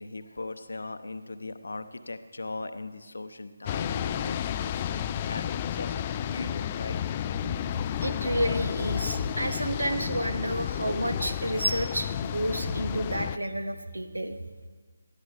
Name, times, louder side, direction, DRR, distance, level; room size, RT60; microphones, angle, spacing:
voice 1, 0.0-7.0, left 3 dB, 60° left, 10 dB, 1.0 m, -39 dB
sound 1, 3.6-13.4, left 10 dB, 20° left, 0.3 m, -31 dB
voice 2, 8.0-14.3, right 1 dB, 75° right, 9 dB, 1.4 m, -30 dB
20.0 x 13.5 x 3.5 m, 1.5 s
figure-of-eight pair, 150°, 0 cm